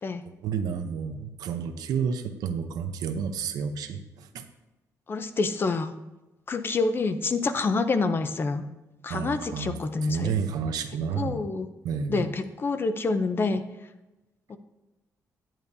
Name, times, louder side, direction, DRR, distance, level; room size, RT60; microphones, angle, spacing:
voice 1, 0.4-4.4 9.1-9.8 10.1-11.4 11.8-12.3, right 6 dB, 90° right, 8 dB, 0.7 m, -30 dB
voice 2, 5.1-5.9 6.5-8.6 9.0-10.3 11.1-11.7 12.1-13.6 14.5-14.6, left 3 dB, 35° left, 11 dB, 0.6 m, -27 dB
9.7 x 8.9 x 2.7 m, 1.0 s
cardioid pair, 115°, 6 cm